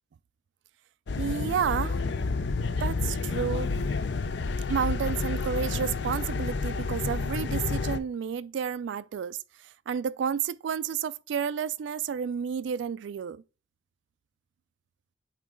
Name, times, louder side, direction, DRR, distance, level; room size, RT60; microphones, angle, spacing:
sound 1, 1.1-8.0, left 4 dB, 70° left, 0.5 m, -30 dB
voice 1, 1.2-2.0 2.8-3.7 4.7-9.4 9.9-13.4, right 7 dB, 80° right, 0.3 m, -31 dB
8.4 x 3.1 x 3.6 m
head